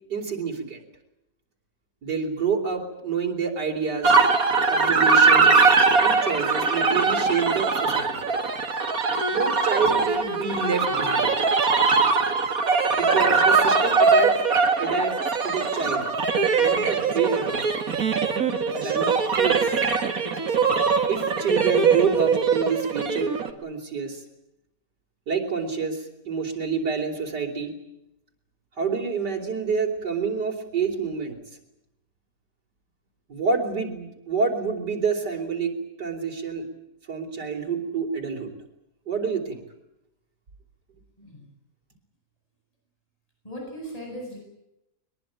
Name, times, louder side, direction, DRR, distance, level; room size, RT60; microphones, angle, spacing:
voice 1, 0.1-0.8 2.0-4.2 4.7-8.2 9.3-11.3 13.0-14.3 14.8-15.1 15.4-16.1 16.6-17.6 18.7-19.1 19.3-19.7 21.1-23.4 23.6-24.2 25.3-27.7 28.8-31.4 33.3-35.7 36.0-36.7 37.1-38.5 39.1-39.6, right 5 dB, 85° right, -1 dB, 4.4 m, -28 dB
sound 1, 4.0-23.5, right 4 dB, 55° right, 2.4 m, -21 dB
voice 2, 43.4-44.4, equal, 20° left, 0 dB, 8.1 m, -37 dB
22.5 x 22.0 x 9.0 m, 0.88 s
omnidirectional pair, 1.8 m